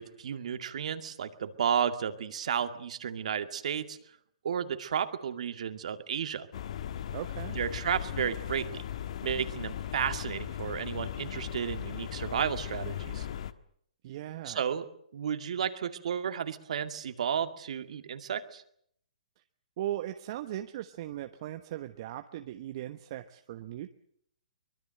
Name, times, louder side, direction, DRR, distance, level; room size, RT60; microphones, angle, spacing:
voice 1, 0.0-4.0 4.4-6.5 7.5-8.8 9.2-13.3 14.4-14.9 15.1-18.6, right 8 dB, 60° right, 8 dB, 2.3 m, -32 dB
sound 1, 6.5-13.5, left 10 dB, 55° left, 1.4 m, -38 dB
voice 2, 7.1-7.6 14.0-14.6 19.8-23.9, right 13 dB, 45° right, 8 dB, 1.2 m, -38 dB
24.0 x 21.5 x 7.8 m, 0.68 s
hypercardioid pair, 135°, 4 cm